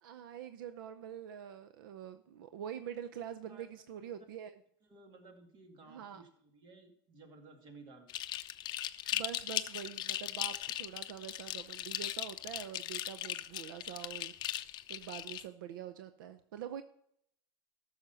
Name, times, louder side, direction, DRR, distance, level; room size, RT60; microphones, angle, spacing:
voice 1, 0.0-4.6 5.8-6.2 9.1-14.3 14.9-16.8, right 9 dB, 90° right, 11 dB, 0.6 m, -45 dB
voice 2, 4.9-8.1, right 3 dB, 45° right, 5 dB, 2.3 m, -56 dB
sound 1, 8.1-15.4, left 13 dB, 40° left, 0.6 m, -38 dB
13.5 x 6.5 x 5.6 m, 0.71 s
supercardioid pair, 130°, 11 cm